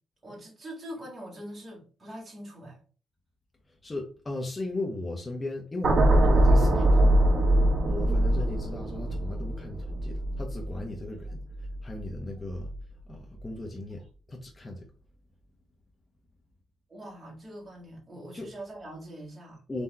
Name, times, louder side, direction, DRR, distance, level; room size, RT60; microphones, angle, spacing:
voice 1, 0.2-2.8 16.9-19.6, right 1 dB, 20° right, 2.0 m, -43 dB
voice 2, 3.8-7.2 7.8-11.4 11.8-12.7 13.1-14.9 18.3-18.5 19.7-19.8, left 2 dB, 20° left, 0.8 m, -37 dB
sound 1, 5.8-12.1 12.5-12.8, right 1 dB, 40° right, 0.9 m, -23 dB
3.8 x 3.0 x 4.2 m
cardioid pair, 135°, 0 cm